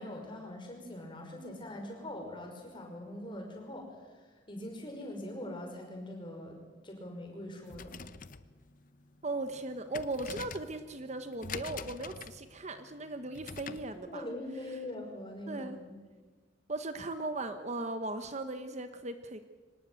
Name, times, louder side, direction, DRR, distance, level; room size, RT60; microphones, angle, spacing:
voice 1, 0.0-8.0 14.1-16.0, left 1 dB, 25° left, 2 dB, 5.8 m, -43 dB
sound 1, 7.6-14.0, left 5 dB, 45° left, 0.9 m, -46 dB
voice 2, 9.2-14.3 15.5-15.8 16.7-19.4, right 2 dB, 35° right, 9 dB, 1.2 m, -38 dB
24.5 x 19.0 x 9.0 m, 1.4 s
head